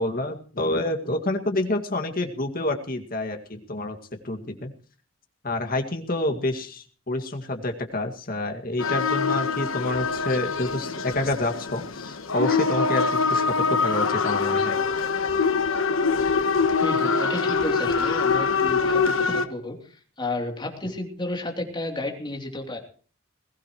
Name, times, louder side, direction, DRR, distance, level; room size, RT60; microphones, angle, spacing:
voice 1, 0.0-4.0 4.2-4.7 5.4-14.8, left 2 dB, 45° left, 4 dB, 2.2 m, -28 dB
sound 1, 8.8-19.4, left 5 dB, 80° left, 1.3 m, -24 dB
voice 2, 16.8-22.8, left 2 dB, 20° left, 2 dB, 3.1 m, -32 dB
21.5 x 16.5 x 3.1 m, 0.41 s
head